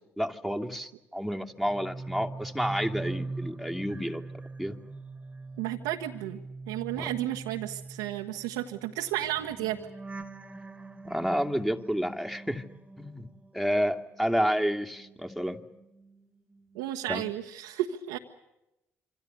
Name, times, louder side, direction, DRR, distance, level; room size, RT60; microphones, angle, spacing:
voice 1, 0.2-4.2 4.6-4.8 6.9-7.1 11.0-12.6 13.0-13.3 13.5-15.6 17.1-17.2, equal, ahead, 3 dB, 2.6 m, -30 dB
sound 1, 1.6-13.8 14.1-16.2 16.5-16.9, right 3 dB, 20° right, 2.2 m, -42 dB
voice 2, 5.6-6.4 6.7-9.8 16.7-18.2, right 13 dB, 80° right, 2 dB, 1.3 m, -33 dB
27.0 x 26.0 x 6.9 m, 0.92 s
hypercardioid pair, 50°, 7 cm